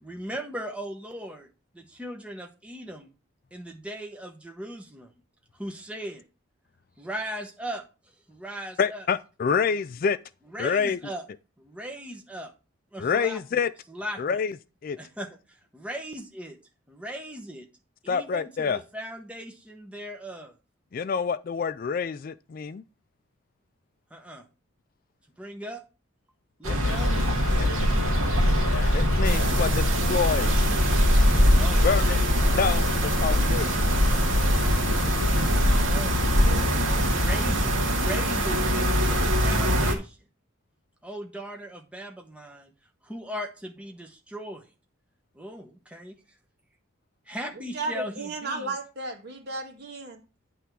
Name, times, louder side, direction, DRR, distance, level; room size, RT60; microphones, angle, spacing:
voice 1, 0.0-1.5 1.7-3.1 3.5-5.1 5.5-6.2 7.0-7.9 8.3-9.1 10.5-11.2 11.6-12.5 12.9-13.6 13.9-14.4 15.0-16.6 16.9-17.7 18.0-20.5 24.1-24.5 25.4-25.8 26.6-27.1 31.5-31.8 35.8-36.2 37.2-40.2 41.0-42.7 43.0-44.7 45.4-46.1 47.3-48.8, equal, 5° right, 0.9 m, -38 dB
voice 2, 8.8-10.2 10.6-11.0 13.0-13.7 14.2-14.5 14.8-15.0 18.1-18.8 20.9-22.8 26.7-26.9 27.6-27.9 28.9-30.5 31.8-32.2 32.5-34.0, left 6 dB, 45° left, 0.3 m, -27 dB
sound 1, 26.6-39.9, left 1 dB, 90° right, 1.5 m, -23 dB
Rain, 26.9-35.8, left 1 dB, 75° left, 0.9 m, -28 dB
sound 2, 29.2-39.9, right 3 dB, 65° right, 1.9 m, -31 dB
voice 3, 47.7-50.2, right 3 dB, 50° right, 1.8 m, -34 dB
9.8 x 3.4 x 6.0 m
head